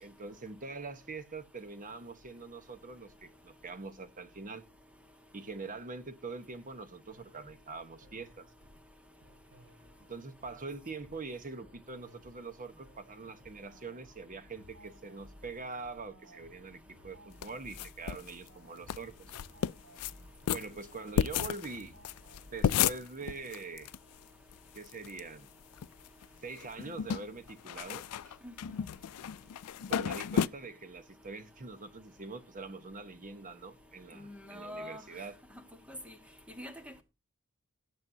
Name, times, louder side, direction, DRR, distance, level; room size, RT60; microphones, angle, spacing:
voice 1, 0.0-4.6 5.3-8.5 10.0-19.1 20.5-21.9 22.5-23.9 24.7-25.5 26.4-28.4 29.9-35.4, right 4 dB, 40° right, 1.1 m, -44 dB
sound 1, 7.1-22.9, equal, 85° right, 3.6 m, -59 dB
sound 2, 17.4-18.3 18.6-18.7 18.9-19.0 19.3-20.1 20.5-24.0 24.2-24.3 24.5-25.2 25.6-26.3 26.6-30.5, left 8 dB, 85° left, 0.4 m, -33 dB
voice 2, 28.4-28.9 34.1-35.0 35.9-36.1 36.5-37.0, left 1 dB, 5° right, 1.5 m, -45 dB
17.0 x 7.5 x 2.8 m
head